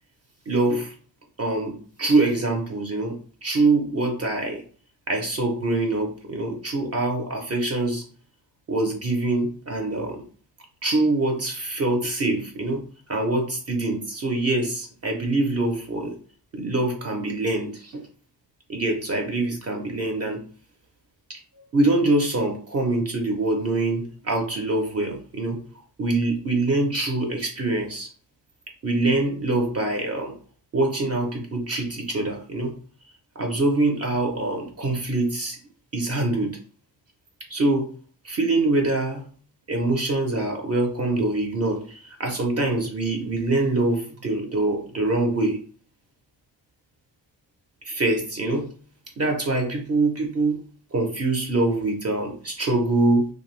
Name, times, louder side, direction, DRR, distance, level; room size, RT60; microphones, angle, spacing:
voice 1, 0.5-0.9 1.4-3.2 3.4-4.6 5.1-8.0 8.7-10.2 10.8-12.8 13.1-16.1 16.5-18.0 18.7-20.4 21.3-21.4 21.7-25.6 26.0-28.1 28.8-30.3 30.7-32.7 33.4-35.6 35.9-36.6 37.5-37.9 38.2-39.2 39.7-45.6 47.8-48.7 49.2-50.6 50.9-53.3, right 2 dB, 40° right, 1 dB, 0.5 m, -24 dB
2.6 x 2.3 x 3.1 m, 0.41 s
wide cardioid pair, 145°, 39 cm